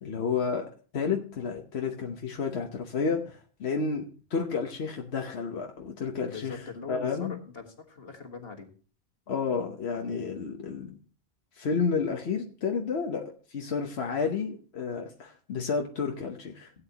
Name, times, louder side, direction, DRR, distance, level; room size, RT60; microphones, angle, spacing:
voice 1, 0.0-4.0 4.3-6.6 6.9-7.4 9.3-11.0 11.5-16.7, left 5 dB, 90° left, 2 dB, 1.3 m, -31 dB
voice 2, 6.2-8.7, left 5 dB, 70° left, 4 dB, 1.9 m, -42 dB
17.0 x 8.7 x 2.9 m, 0.39 s
omnidirectional pair, 1.1 m